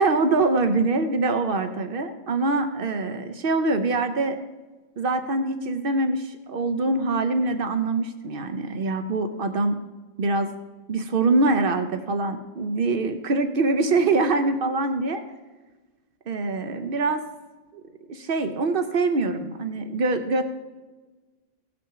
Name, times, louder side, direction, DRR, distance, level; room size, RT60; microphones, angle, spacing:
voice 1, 0.0-4.4 5.0-9.8 10.2-10.5 10.9-15.2 16.3-17.2 18.1-20.4, right 3 dB, 80° right, 8 dB, 0.5 m, -24 dB
17.0 x 6.1 x 5.7 m, 1.3 s
omnidirectional pair, 1.8 m